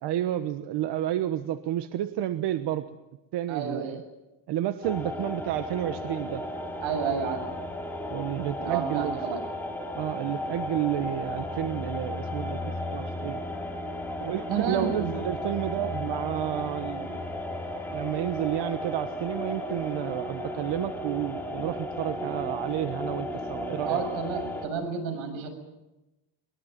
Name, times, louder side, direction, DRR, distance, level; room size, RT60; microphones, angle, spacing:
voice 1, 0.0-2.8 3.3-4.0 4.5-6.4 8.1-9.2 9.9-13.4 14.2-17.2 17.9-24.0, right 12 dB, 60° right, 10 dB, 1.2 m, -31 dB
voice 2, 3.5-4.0 6.8-7.4 8.6-9.4 14.5-15.2 23.9-25.5, right 6 dB, 85° right, 7 dB, 7.2 m, -30 dB
sound 1, 4.8-24.7, left 1 dB, 5° left, 3.4 m, -34 dB
22.5 x 21.5 x 9.3 m, 1.0 s
cardioid pair, 150°, 45 cm